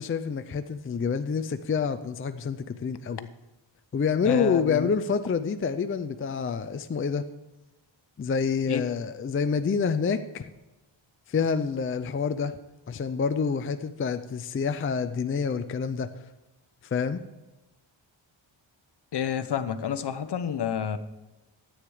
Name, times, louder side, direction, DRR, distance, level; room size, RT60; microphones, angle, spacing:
voice 1, 0.0-3.3 3.9-7.2 8.2-10.5 11.3-12.6 12.9-16.3 16.9-17.2, left 5 dB, 30° left, 9 dB, 0.5 m, -27 dB
voice 2, 4.2-4.9 8.7-8.8 19.1-21.0, left 8 dB, 55° left, 11 dB, 0.9 m, -29 dB
13.5 x 8.8 x 4.9 m, 1.0 s
wide cardioid pair, 140°, 48 cm